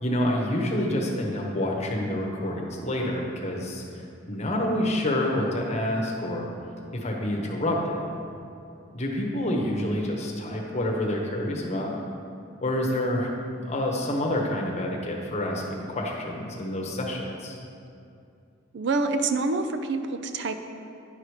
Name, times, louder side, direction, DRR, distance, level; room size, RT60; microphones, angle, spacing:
voice 1, 0.0-4.0 4.3-6.5 6.9-8.0 8.9-11.9 12.6-13.3 13.7-17.6, left 1 dB, 35° left, -1 dB, 1.1 m, -28 dB
voice 2, 18.7-20.6, right 3 dB, 60° right, 8 dB, 0.4 m, -26 dB
9.9 x 4.9 x 4.9 m, 2.5 s
head